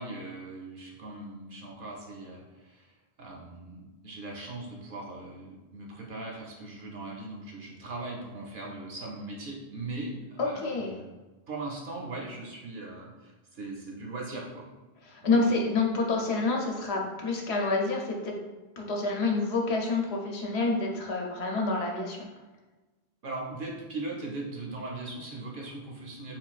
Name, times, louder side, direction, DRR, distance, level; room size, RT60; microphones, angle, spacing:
voice 1, 0.0-11.2 11.5-14.6 15.2-15.5 23.2-26.4, right 2 dB, 60° right, -2 dB, 0.7 m, -39 dB
voice 2, 10.4-10.9 15.1-18.4 18.8-22.3, left 3 dB, 85° left, 0 dB, 0.9 m, -28 dB
3.6 x 2.3 x 2.3 m, 1.2 s
omnidirectional pair, 1.1 m